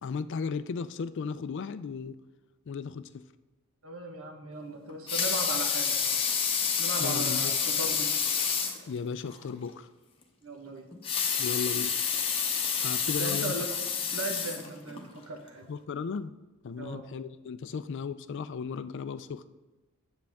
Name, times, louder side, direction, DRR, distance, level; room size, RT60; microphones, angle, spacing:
voice 1, 0.0-2.2 2.7-3.2 7.0-7.6 8.9-9.9 11.4-12.0 12.8-13.5 15.7-16.3 16.6-19.5, left 5 dB, 55° left, 13 dB, 0.4 m, -35 dB
voice 2, 3.8-6.1 6.8-8.2 10.4-10.9 13.1-13.7 14.1-15.7 16.8-17.0, right 2 dB, 75° right, 4 dB, 1.1 m, -38 dB
Water tap faucet / Sink (filling or washing) / Liquid, 4.9-8.8 9.3-9.4 9.7-9.8 10.9-15.0 15.6-15.7, left 6 dB, 25° left, 0.8 m, -29 dB
8.0 x 7.6 x 3.5 m, 1.1 s
head